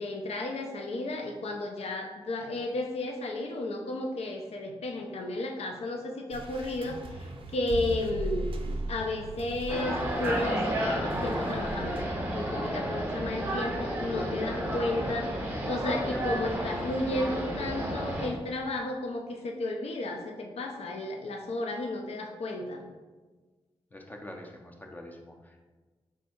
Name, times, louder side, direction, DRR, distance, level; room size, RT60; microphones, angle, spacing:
voice 1, 0.0-12.1 12.3-22.8, left 2 dB, 80° left, 2 dB, 0.5 m, -33 dB
sound 1, 6.3-12.0, right 2 dB, 60° right, 0.4 m, -38 dB
sound 2, 9.7-18.3, equal, 20° right, 0.7 m, -31 dB
voice 2, 12.4-12.8 16.1-16.4 23.9-25.6, left 1 dB, 15° left, 2 dB, 0.4 m, -43 dB
3.4 x 2.7 x 4.3 m, 1.3 s
wide cardioid pair, 155°, 10 cm